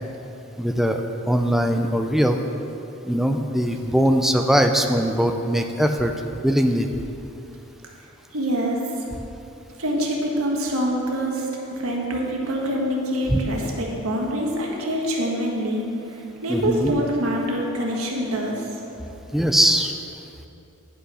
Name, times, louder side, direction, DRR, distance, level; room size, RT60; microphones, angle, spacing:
voice 1, 0.6-2.4 3.1-6.1 6.4-6.9 13.3-13.4 16.5-16.9 19.3-19.9, equal, ahead, 5 dB, 0.4 m, -21 dB
voice 2, 8.3-8.8 9.8-18.7, equal, 85° right, -1 dB, 1.5 m, -25 dB
10.5 x 5.6 x 5.6 m, 2.9 s
head